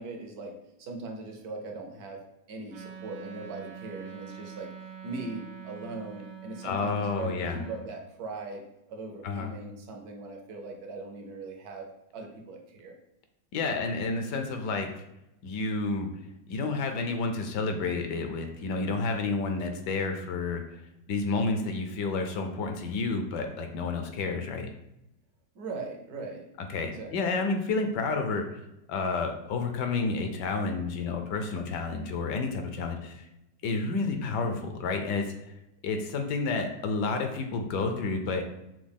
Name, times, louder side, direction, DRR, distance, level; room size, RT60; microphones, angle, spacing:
voice 1, 0.0-2.2 2.5-4.7 5.0-8.6 8.9-11.9 12.1-13.0 25.5-26.5 26.8-27.5 31.6-31.8 33.6-33.7, right 3 dB, 65° right, 2 dB, 1.1 m, -40 dB
Wind instrument woodwind instrument, 2.7-7.9, right 7 dB, 85° right, 1.3 m, -44 dB
voice 2, 6.6-7.6 9.2-9.5 13.5-14.9 15.4-16.1 16.5-20.6 21.1-24.7 26.7-28.5 28.9-33.3 33.6-35.3 35.8-38.4, left 3 dB, 75° left, 5 dB, 1.2 m, -30 dB
6.0 x 2.3 x 3.5 m, 0.87 s
omnidirectional pair, 1.9 m